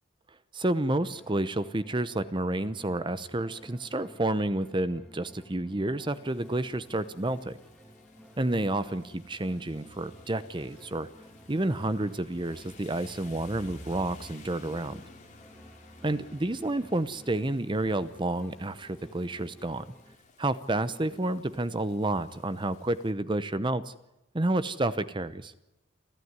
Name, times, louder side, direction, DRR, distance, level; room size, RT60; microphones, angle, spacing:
voice 1, 0.5-7.6 8.4-11.1 11.5-15.0 16.0-19.8 20.4-23.9 24.3-25.5, right 2 dB, 25° right, 14 dB, 0.8 m, -30 dB
sound 1, 1.0-20.2, equal, 5° left, 1.7 m, -55 dB
Rain, 6.1-23.1, left 2 dB, 40° left, 3.1 m, -54 dB
29.5 x 12.5 x 9.6 m, 0.87 s
head